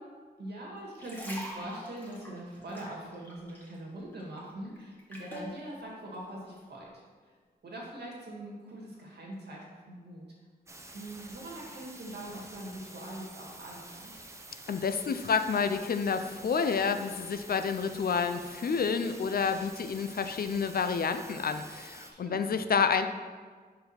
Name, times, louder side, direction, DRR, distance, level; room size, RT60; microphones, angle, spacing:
voice 1, 0.4-6.9 7.2-7.3 7.6-10.3 10.9-14.2 22.1-22.4, right 1 dB, 85° right, -3 dB, 1.8 m, -42 dB
sound 1, 0.8-3.8 4.1-5.5 6.1-6.3, equal, 10° left, 1.5 m, -44 dB
sound 2, 10.7-22.1, right 2 dB, 15° right, 0.6 m, -49 dB
voice 2, 14.7-23.1, left 6 dB, 65° left, 8 dB, 0.5 m, -29 dB
5.2 x 4.7 x 5.8 m, 1.5 s
wide cardioid pair, 140°, 17 cm